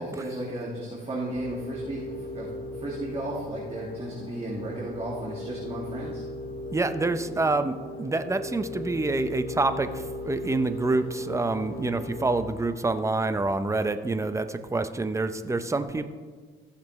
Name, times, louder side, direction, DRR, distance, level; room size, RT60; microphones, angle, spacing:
voice 1, 0.0-6.2, right 1 dB, 30° right, -5 dB, 2.1 m, -34 dB
sound 1, 1.3-13.3, left 1 dB, 50° left, 2.6 m, -38 dB
voice 2, 6.7-16.1, right 3 dB, 15° right, 10 dB, 0.6 m, -27 dB
15.0 x 6.9 x 3.2 m, 1.5 s
cardioid pair, 90°, 20 cm